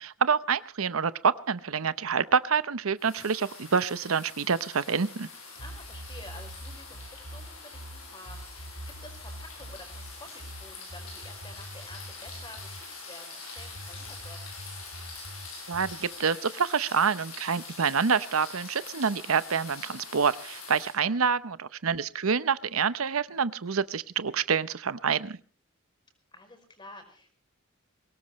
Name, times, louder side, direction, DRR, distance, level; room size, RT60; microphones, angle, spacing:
voice 1, 0.0-5.3 15.7-25.4, right 6 dB, 85° right, 15 dB, 0.8 m, -27 dB
sound 1, 3.0-21.0, left 4 dB, 90° left, 6.4 m, -44 dB
voice 2, 5.5-8.7 9.0-14.5 21.0-21.2 26.3-27.3, left 1 dB, 25° left, 6 dB, 5.0 m, -50 dB
sound 2, 5.6-12.9 13.6-16.0, right 1 dB, 60° right, 2.8 m, -44 dB
23.0 x 18.5 x 3.2 m, 0.42 s
head